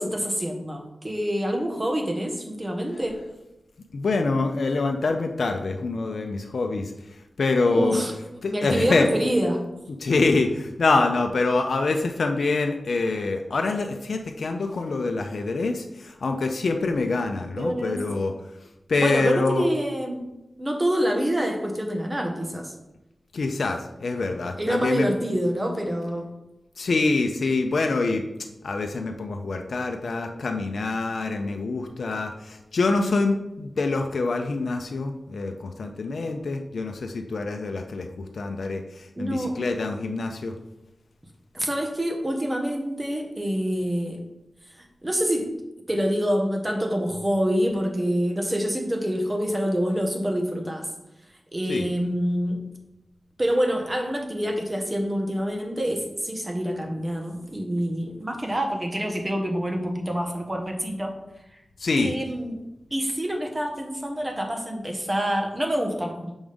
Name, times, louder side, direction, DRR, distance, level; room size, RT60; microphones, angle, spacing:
voice 1, 0.0-3.2 7.8-8.1 8.5-9.6 17.6-18.0 19.0-20.3 20.6-22.7 24.6-26.3 39.2-39.6 41.5-44.2 45.0-45.5 45.9-50.9 51.5-52.6 53.4-61.1 62.0-62.6 62.9-66.3, equal, 25° right, 2 dB, 1.2 m, -26 dB
voice 2, 3.9-8.0 8.4-9.1 10.0-18.3 18.6-19.7 23.3-25.1 26.8-28.3 28.6-40.5 51.6-51.9 61.8-62.1, left 3 dB, 80° left, 4 dB, 0.5 m, -25 dB
6.2 x 3.5 x 5.1 m, 0.93 s
wide cardioid pair, 70°, 0 cm